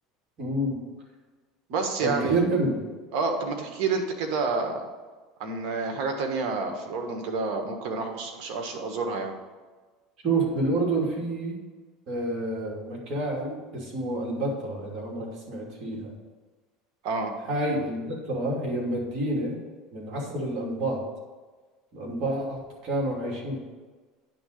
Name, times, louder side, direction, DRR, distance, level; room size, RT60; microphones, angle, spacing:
voice 1, 0.4-0.8 2.0-2.7 10.2-11.6 12.1-16.1 17.4-19.6 19.9-21.0 21.9-23.6, right 2 dB, 50° right, -2 dB, 2.8 m, -28 dB
voice 2, 1.7-2.4 3.1-4.8 5.4-9.3 17.0-17.3, right 4 dB, 65° right, 4 dB, 1.6 m, -29 dB
10.5 x 3.9 x 6.6 m, 1.3 s
supercardioid pair, 115°, 0 cm